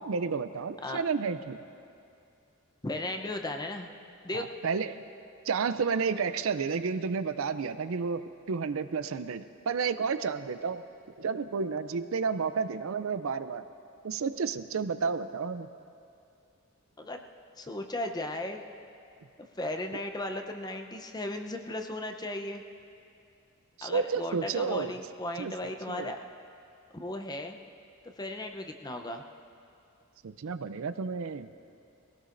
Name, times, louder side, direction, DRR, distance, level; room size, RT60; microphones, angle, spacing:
voice 1, 0.0-1.6 4.3-5.0 5.4-10.8 11.2-13.6 14.0-15.7 23.8-24.9 25.4-26.1 30.2-31.5, right 5 dB, 70° right, 12 dB, 0.5 m, -31 dB
voice 2, 2.8-3.9 4.2-4.5 17.0-17.2 17.6-18.6 19.6-22.6 23.8-26.2 26.9-27.6 28.0-29.2, left 1 dB, 20° left, 4 dB, 0.7 m, -36 dB
22.0 x 17.5 x 2.6 m, 2.5 s
head